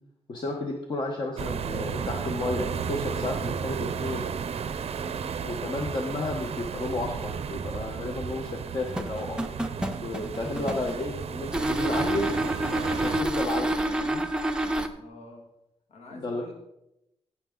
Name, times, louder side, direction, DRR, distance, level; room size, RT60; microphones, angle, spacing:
voice 1, 0.3-4.3 5.4-9.5 10.0-12.3 13.0-14.2 16.1-16.5, left 2 dB, 45° left, 1 dB, 1.1 m, -32 dB
sound 1, 1.4-13.2, right 6 dB, 65° right, 0.6 m, -33 dB
voice 2, 4.9-5.4 14.9-15.5 15.9-16.5, left 2 dB, 70° left, 1 dB, 2.1 m, -45 dB
sound 2, 8.9-11.0 11.5-14.9, right 1 dB, 5° right, 0.6 m, -28 dB
17.0 x 6.0 x 3.8 m, 0.86 s
wide cardioid pair, 155°, 11 cm